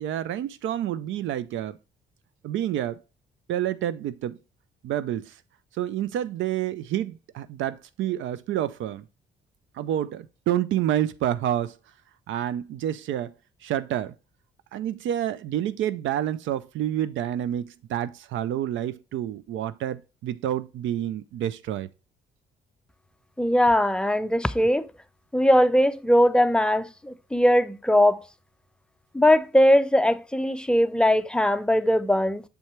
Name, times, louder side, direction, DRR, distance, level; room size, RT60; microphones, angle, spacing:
voice 1, 0.0-1.8 2.4-3.0 3.5-4.4 4.8-5.4 5.7-9.0 9.7-11.8 12.3-13.3 13.6-14.1 14.7-21.9, right 11 dB, 75° right, 0.4 m, -28 dB
voice 2, 23.4-24.9 25.3-28.2 29.1-32.4, equal, 5° left, 0.4 m, -20 dB
6.8 x 4.4 x 3.2 m
cardioid pair, 90°, 20 cm